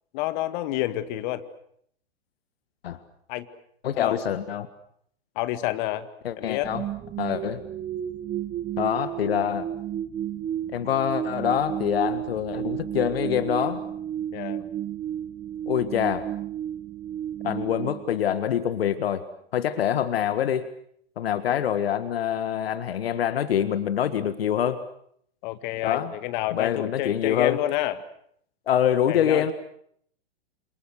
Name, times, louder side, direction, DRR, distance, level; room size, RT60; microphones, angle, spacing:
voice 1, 0.1-1.4 3.3-3.5 3.9-4.2 5.4-6.1 6.4-6.7 14.3-14.6 21.6-21.7 25.4-28.0 29.1-29.5, left 15 dB, 45° left, 12 dB, 2.1 m, -29 dB
voice 2, 3.8-4.7 6.2-6.8 7.2-7.6 8.8-9.7 10.7-13.8 15.7-16.3 17.4-19.2 19.5-20.7 21.2-24.8 25.8-26.1 26.5-27.6 28.7-29.5, left 9 dB, 65° left, 12 dB, 1.8 m, -25 dB
sound 1, 6.6-18.8, right 11 dB, 25° right, 1.2 m, -32 dB
28.0 x 28.0 x 6.5 m, 0.66 s
figure-of-eight pair, 105°, 32 cm